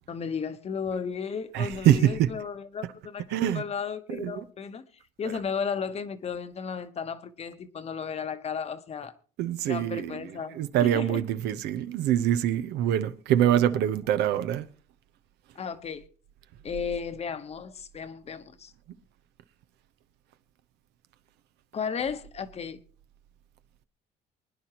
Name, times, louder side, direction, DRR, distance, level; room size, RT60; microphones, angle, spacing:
voice 1, 0.1-9.1 9.7-11.2 13.6-13.7 15.5-16.0 16.6-18.7 21.7-22.8, left 6 dB, 40° left, 1.0 m, -34 dB
voice 2, 1.5-2.3 3.3-3.6 4.1-4.4 9.4-10.1 10.5-14.7, right 11 dB, 80° right, 0.9 m, -24 dB
23.5 x 10.0 x 3.0 m
cardioid pair, 110°, 17 cm